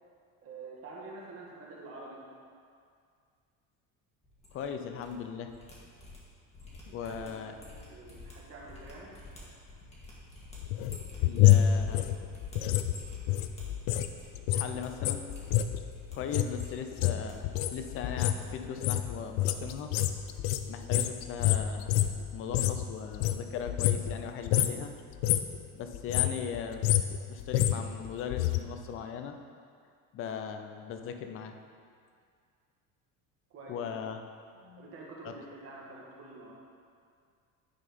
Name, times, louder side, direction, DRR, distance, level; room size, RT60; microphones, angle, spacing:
voice 1, 0.4-2.2 7.0-9.1 33.5-33.8 34.8-36.6, right 3 dB, 40° right, -3 dB, 1.6 m, -47 dB
sound 1, 4.2-5.1 5.4-14.3 14.6-14.9 15.2-16.1 16.5-17.3 17.6-18.4 18.7-19.1 19.3-19.5, left 1 dB, 20° left, 1.6 m, -51 dB
voice 2, 4.5-5.5 6.8-7.5 11.2-12.0 14.5-15.3 16.1-19.9 20.7-21.9 22.3-24.9 25.7-26.8 27.3-29.4 30.1-31.6 33.7-34.2 34.6-34.9 35.2-35.3, left 7 dB, 40° left, 6 dB, 0.5 m, -38 dB
sound 2, 10.5-14.1 14.4-22.9 23.1-24.2 24.5-24.8 25.1-25.6 25.9-28.6 28.9-29.0, left 12 dB, 85° left, 0.5 m, -27 dB
9.8 x 4.0 x 5.3 m, 2.2 s
cardioid pair, 160°, 35 cm